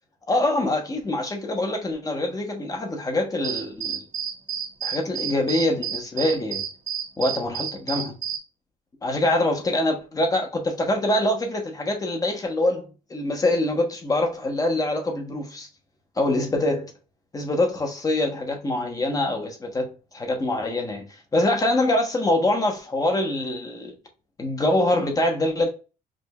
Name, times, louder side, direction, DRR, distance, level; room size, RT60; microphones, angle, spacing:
voice 1, 0.3-4.0 4.8-6.6 7.2-8.1 9.0-15.7 16.2-16.9 17.3-21.1 21.3-24.0 24.4-25.7, left 1 dB, 20° left, 1.1 m, -24 dB
sound 1, 3.4-8.4, right 8 dB, 50° right, 1.3 m, -30 dB
5.0 x 2.6 x 2.4 m
cardioid pair, 110°, 17 cm